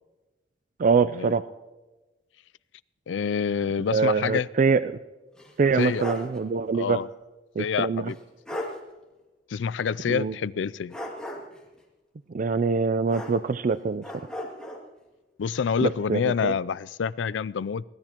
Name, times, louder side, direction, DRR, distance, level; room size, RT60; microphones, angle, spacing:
voice 1, 0.8-1.5 3.9-4.9 5.6-7.0 7.6-8.1 10.1-10.3 12.3-14.0 15.8-16.5, right 5 dB, 45° right, 0.4 m, -24 dB
voice 2, 3.1-4.5 5.7-6.0 6.7-7.1 7.6-8.2 9.5-11.0 15.4-17.8, left 6 dB, 90° left, 0.4 m, -27 dB
sound 1, 5.4-6.4 6.7-6.8 8.1-8.2 8.5-8.8 10.9-11.6 13.1-13.7 14.0-14.8, left 1 dB, 5° left, 2.4 m, -36 dB
24.0 x 17.5 x 3.0 m
head